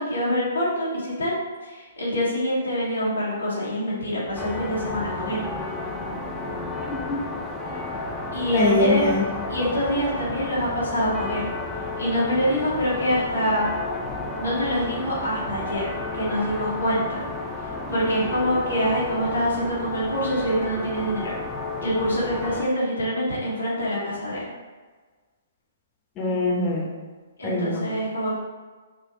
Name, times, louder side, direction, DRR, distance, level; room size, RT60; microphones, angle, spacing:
voice 1, 0.0-1.4 1.6-5.5 8.3-9.2 9.5-11.5 12.0-13.7 14.4-17.2 17.9-21.3 21.8-24.4 27.4-28.4, equal, 90° left, -7 dB, 1.4 m, -25 dB
sound 1, 4.4-22.6, left 2 dB, 5° left, 0.5 m, -32 dB
voice 2, 6.8-7.2 8.5-9.2 26.2-26.9 27.4-27.8, left 2 dB, 25° left, -3 dB, 1.0 m, -23 dB
4.3 x 2.3 x 2.9 m, 1.4 s
hypercardioid pair, 130°, 0 cm